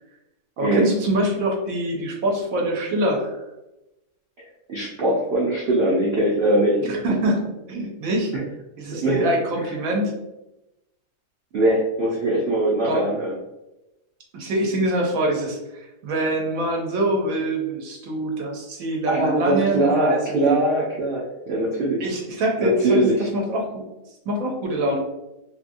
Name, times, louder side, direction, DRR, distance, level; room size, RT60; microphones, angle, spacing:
voice 1, 0.6-3.4 6.8-8.3 8.8-10.1 12.8-13.0 14.3-20.6 22.0-23.9 24.3-25.0, right 1 dB, 65° right, 0 dB, 0.9 m, -24 dB
voice 2, 4.7-6.8 8.3-8.4 8.9-9.3 11.5-13.3 19.1-22.0 22.6-23.3, right 1 dB, 85° right, -5 dB, 0.5 m, -21 dB
2.7 x 2.7 x 2.5 m, 0.95 s
omnidirectional pair, 1.7 m